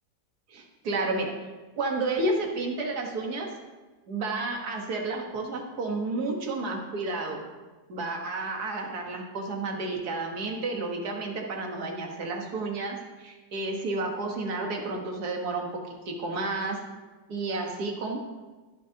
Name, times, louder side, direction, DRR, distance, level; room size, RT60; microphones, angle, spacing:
voice 1, 0.5-1.3 1.8-3.6 4.1-7.4 7.9-16.8 17.3-18.2, right 2 dB, 60° right, 1 dB, 2.0 m, -31 dB
22.0 x 7.3 x 2.9 m, 1.3 s
omnidirectional pair, 1.9 m